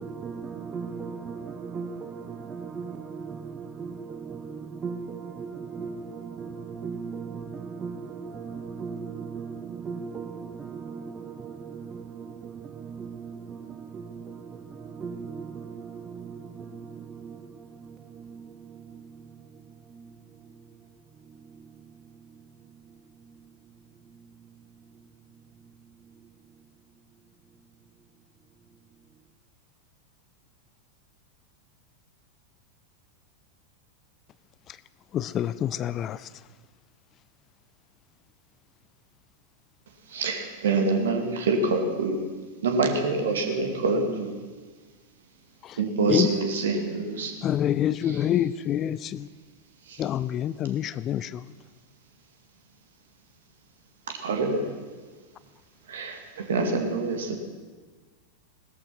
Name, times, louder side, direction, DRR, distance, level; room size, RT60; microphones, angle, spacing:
voice 1, 0.0-20.9 21.2-23.5 24.0-24.6 24.9-25.1 25.6-25.7 26.0-26.2, right 5 dB, 20° right, 0.7 m, -39 dB
voice 2, 35.1-36.3 45.6-45.8 46.1-46.3 47.4-49.3 50.0-51.5, left 10 dB, 30° left, 0.4 m, -27 dB
voice 3, 40.1-42.3 42.6-44.4 45.7-47.4 48.1-48.2 49.8-50.0 54.1-54.7 55.9-57.4, right 3 dB, 60° right, 2.2 m, -26 dB
18.0 x 13.5 x 5.8 m
figure-of-eight pair, 90°, 0 cm